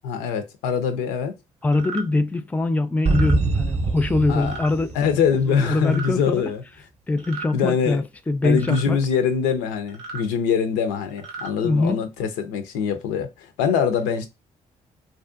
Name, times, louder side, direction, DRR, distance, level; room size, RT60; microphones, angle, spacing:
voice 1, 0.0-1.3 4.3-4.7 4.9-6.6 7.5-8.0 8.4-14.3, left 7 dB, 85° left, 0.4 m, -23 dB
voice 2, 1.6-4.9 5.5-6.4 7.1-9.0 11.6-12.0, left 2 dB, 10° left, 0.3 m, -23 dB
sound 1, 1.7-2.0 3.0-3.4 4.4-4.7 5.8-6.1 7.2-7.5 8.6-8.8 9.9-10.2 11.1-11.5, right 5 dB, 85° right, 0.6 m, -36 dB
sound 2, 3.1-5.8, right 2 dB, 40° right, 0.6 m, -24 dB
2.5 x 2.2 x 2.4 m
hypercardioid pair, 50°, 17 cm